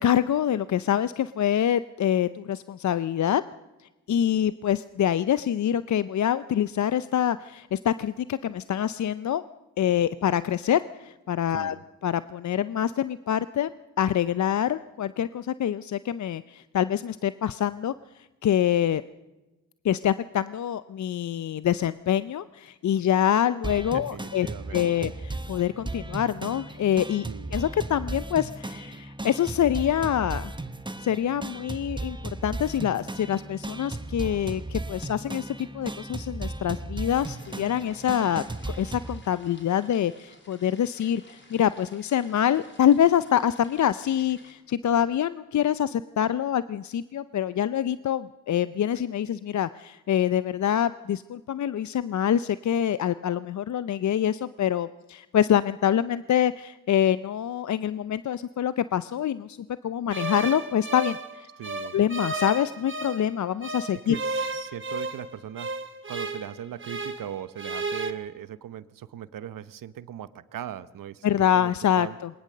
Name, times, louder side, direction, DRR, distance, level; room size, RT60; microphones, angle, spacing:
voice 1, 0.0-3.4 4.1-9.4 9.8-11.8 12.0-13.7 14.0-17.9 18.4-19.0 19.8-27.3 27.5-30.5 31.0-59.6 59.8-61.5 61.9-64.2 71.2-72.3, left 10 dB, 60° left, 15 dB, 0.6 m, -25 dB
voice 2, 11.5-11.8 23.9-24.9 27.3-27.6 61.6-62.0 64.1-65.7 66.1-71.7 72.0-72.2, right 10 dB, 75° right, 15 dB, 0.9 m, -39 dB
sound 1, 23.6-39.2, right 2 dB, 15° right, 1.2 m, -36 dB
sound 2, 37.0-44.5, left 2 dB, 35° left, 3.6 m, -54 dB
sound 3, 60.1-63.3 63.6-67.3 67.6-68.1, right 3 dB, 35° right, 2.0 m, -33 dB
21.0 x 19.0 x 6.6 m, 1.1 s
supercardioid pair, 50°, 33 cm